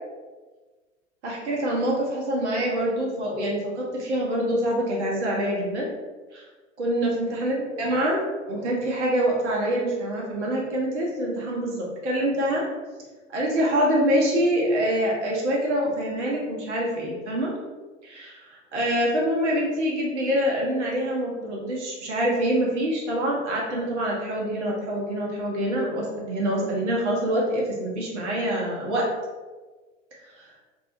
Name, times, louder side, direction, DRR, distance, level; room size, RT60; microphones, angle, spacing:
voice 1, 1.2-5.8 6.3-6.4 6.8-12.6 13.3-17.5 18.0-18.3 18.7-29.1, equal, 65° right, -3 dB, 0.9 m, -25 dB
2.6 x 2.0 x 2.7 m, 1.3 s
figure-of-eight pair, 85°, 36 cm